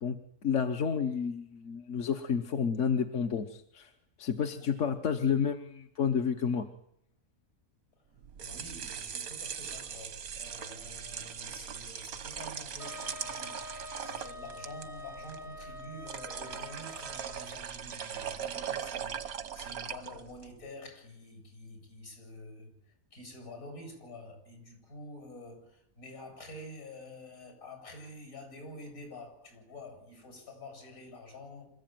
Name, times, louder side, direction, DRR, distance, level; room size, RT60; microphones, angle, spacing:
voice 1, 0.0-3.9 4.2-6.7, left 7 dB, 60° left, 1.4 m, -30 dB
sound 1, 8.2-20.5, right 8 dB, 85° right, 1.6 m, -40 dB
voice 2, 8.4-22.7 23.1-31.7, left 1 dB, 80° left, 8.6 m, -48 dB
Wind instrument woodwind instrument, 12.8-17.5, left 2 dB, 25° left, 0.8 m, -46 dB
27.0 x 14.5 x 9.3 m
omnidirectional pair, 1.5 m